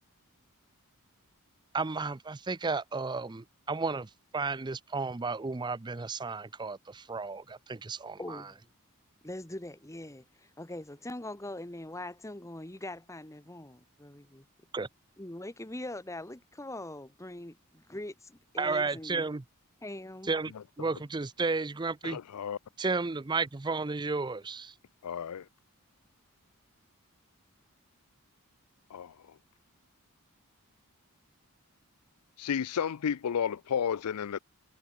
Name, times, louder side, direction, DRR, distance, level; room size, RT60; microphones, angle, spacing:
voice 1, 1.7-8.4 14.7-14.9 18.6-19.4 20.2-20.5 20.8-22.2 22.8-24.7, right 4 dB, 20° right, 0.5 m, -33 dB
voice 2, 8.2-8.6 9.2-14.4 15.2-19.2 19.8-20.3, left 1 dB, 15° left, 1.4 m, -42 dB
voice 3, 20.5-20.9 22.0-22.6 25.0-25.5 28.9-29.1 32.4-34.4, left 7 dB, 90° left, 0.4 m, -32 dB
head